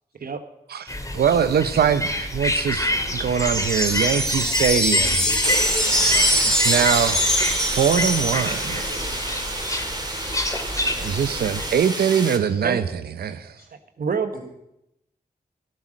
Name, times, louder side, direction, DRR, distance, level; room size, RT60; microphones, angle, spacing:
sound 1, 0.9-11.7, left 1 dB, 20° left, 2.6 m, -28 dB
voice 1, 1.1-5.2 6.1-7.2 7.6-8.8 11.0-13.5, right 8 dB, 90° right, 0.7 m, -23 dB
sound 2, 3.4-8.9, equal, 5° left, 2.4 m, -22 dB
voice 2, 5.1-6.0 8.3-9.2 12.5-12.6 13.2-13.7 14.3-14.4, left 2 dB, 90° left, 6.3 m, -37 dB
sound 3, 5.4-12.4, right 2 dB, 25° right, 2.5 m, -30 dB
voice 3, 14.0-14.4, right 5 dB, 70° right, 1.2 m, -26 dB
12.5 x 12.0 x 6.3 m
cardioid pair, 45°, 16 cm